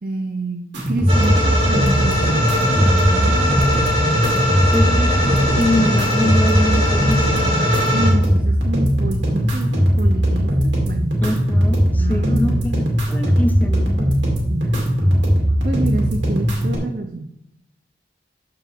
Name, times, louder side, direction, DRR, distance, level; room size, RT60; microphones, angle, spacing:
voice 1, 0.0-3.8 7.9-11.1 12.0-12.6 14.5-14.9 15.6-17.3, right 2 dB, 50° right, 5 dB, 0.6 m, -28 dB
sound 1, 0.7-16.7, equal, 90° right, 2.5 m, -19 dB
sound 2, 1.1-8.1, left 1 dB, 35° right, 2.6 m, -21 dB
voice 2, 4.7-7.6 11.2-14.1, equal, 10° left, 6 dB, 0.7 m, -24 dB
13.0 x 4.7 x 3.5 m, 0.77 s
head